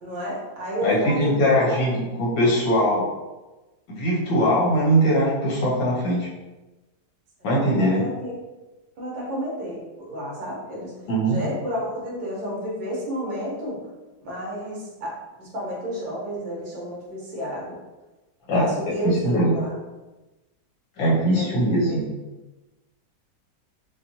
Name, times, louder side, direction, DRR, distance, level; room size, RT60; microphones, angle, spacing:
voice 1, 0.0-1.8 7.7-8.3 9.0-10.9 11.3-13.8 14.2-15.1 15.4-17.8 18.5-19.7 21.4-22.0, equal, 85° right, -4 dB, 1.9 m, -31 dB
voice 2, 0.8-3.1 3.9-6.3 7.4-8.0 11.1-11.4 18.5-18.7 19.0-19.5 21.0-22.1, equal, 85° left, -5 dB, 2.0 m, -21 dB
5.9 x 2.3 x 2.8 m, 1.1 s
omnidirectional pair, 2.0 m